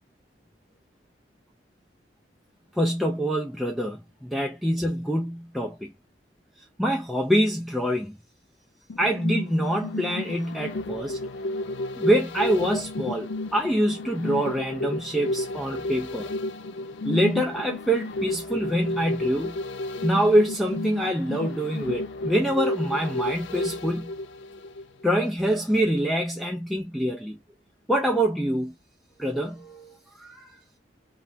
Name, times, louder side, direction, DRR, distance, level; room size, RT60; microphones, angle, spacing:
voice 1, 2.8-5.9 6.8-8.2 9.0-11.2 12.0-16.3 17.0-19.6 20.0-24.1 25.0-27.4 27.9-28.7 29.2-30.6, equal, ahead, 0.3 m, -25 dB
sound 1, 8.9-25.1 25.5-25.6, left 2 dB, 80° left, 0.4 m, -32 dB
2.8 x 2.3 x 2.5 m
head